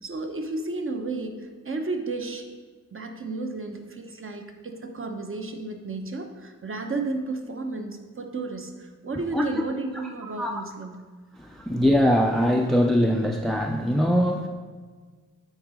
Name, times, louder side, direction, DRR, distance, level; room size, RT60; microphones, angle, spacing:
voice 1, 0.0-2.5 2.9-11.0, right 3 dB, 40° right, 4 dB, 1.0 m, -33 dB
voice 2, 11.4-14.5, equal, ahead, 2 dB, 0.5 m, -22 dB
9.5 x 4.0 x 5.0 m, 1.5 s
cardioid pair, 75°, 32 cm